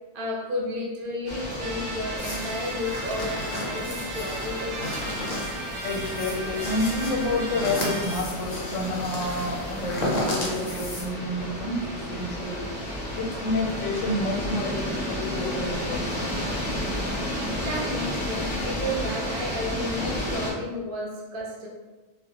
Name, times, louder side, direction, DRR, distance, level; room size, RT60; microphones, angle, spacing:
voice 1, 0.1-4.8 17.5-21.7, left 1 dB, 55° right, -3 dB, 0.7 m, -32 dB
sound 1, 1.3-20.5, left 1 dB, 10° right, 0.5 m, -32 dB
sound 2, 1.6-8.2, right 2 dB, 80° right, 1.0 m, -37 dB
sound 3, 2.2-11.0, left 1 dB, 55° left, 0.6 m, -34 dB
voice 2, 5.8-12.7 13.1-16.3, left 2 dB, 85° left, -1 dB, 1.0 m, -29 dB
2.3 x 2.1 x 2.7 m, 1.2 s
omnidirectional pair, 1.4 m